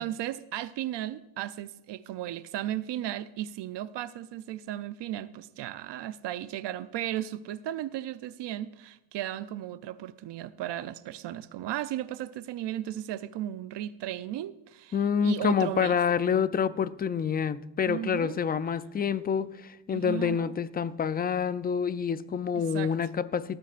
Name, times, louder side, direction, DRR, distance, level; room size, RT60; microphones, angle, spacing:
voice 1, 0.0-16.0 17.8-18.4 19.9-20.5 22.7-23.1, right 12 dB, 60° right, 14 dB, 0.6 m, -35 dB
voice 2, 14.9-23.6, left 7 dB, 20° left, 15 dB, 0.3 m, -27 dB
18.5 x 13.5 x 2.5 m, 1.0 s
cardioid pair, 120°, 49 cm